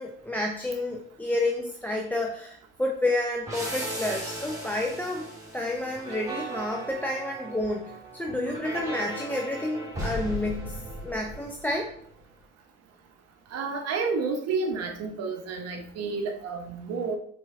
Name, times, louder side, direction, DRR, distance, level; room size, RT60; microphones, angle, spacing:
voice 1, 0.0-11.9, left 1 dB, 5° left, 0 dB, 0.6 m, -30 dB
sound 1, 3.5-11.9, right 1 dB, 10° right, 2.1 m, -37 dB
voice 2, 13.5-17.2, right 4 dB, 60° right, 4 dB, 0.8 m, -30 dB
4.7 x 3.5 x 3.2 m, 0.63 s
hypercardioid pair, 70°, 29 cm